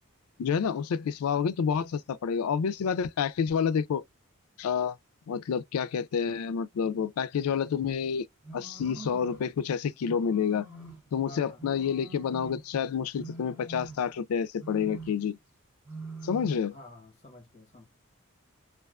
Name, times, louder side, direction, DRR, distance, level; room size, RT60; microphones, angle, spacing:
voice 1, 0.4-4.0 4.6-5.0 5.3-8.2 8.5-10.7 11.1-15.4 16.2-16.8, left 7 dB, 85° left, 0.3 m, -29 dB
sound 1, 8.4-9.5 10.0-11.1 11.6-12.7 13.1-14.2 14.6-15.3 15.8-16.6, right 3 dB, 5° right, 0.8 m, -44 dB
voice 2, 11.2-11.6 16.7-17.8, left 1 dB, 30° left, 1.0 m, -50 dB
2.4 x 2.3 x 2.3 m
head